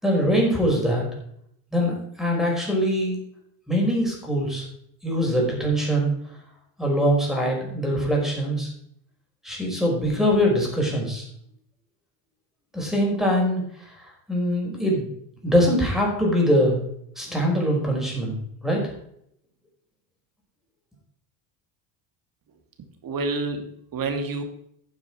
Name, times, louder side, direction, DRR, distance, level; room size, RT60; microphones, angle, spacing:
voice 1, 0.0-1.0 1.7-3.2 3.7-4.7 5.0-6.1 6.8-8.7 9.4-11.3 12.7-13.6 14.0-15.1 15.4-16.8 17.2-18.9, equal, ahead, -1 dB, 5.4 m, -23 dB
voice 2, 23.0-24.4, right 3 dB, 45° right, 6 dB, 2.7 m, -28 dB
12.5 x 7.3 x 5.0 m, 0.70 s
supercardioid pair, 95°, 49 cm